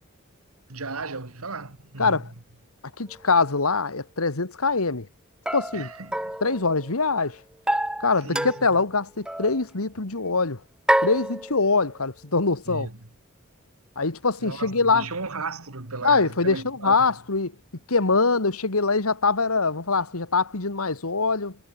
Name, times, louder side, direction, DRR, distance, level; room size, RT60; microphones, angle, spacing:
voice 1, 0.7-2.2 5.7-6.4 8.2-8.7 12.7-13.0 14.4-17.1, right 3 dB, 85° right, 2.1 m, -35 dB
voice 2, 3.0-5.1 5.5-5.9 6.4-7.4 8.0-10.6 11.0-12.9 14.0-15.1 16.0-17.5 17.9-21.6, left 4 dB, 85° left, 1.9 m, -23 dB
sound 1, 3.1-3.2 5.5-7.1 7.7-8.9 9.2-9.6 10.9-11.9, right 1 dB, 5° right, 0.6 m, -28 dB
head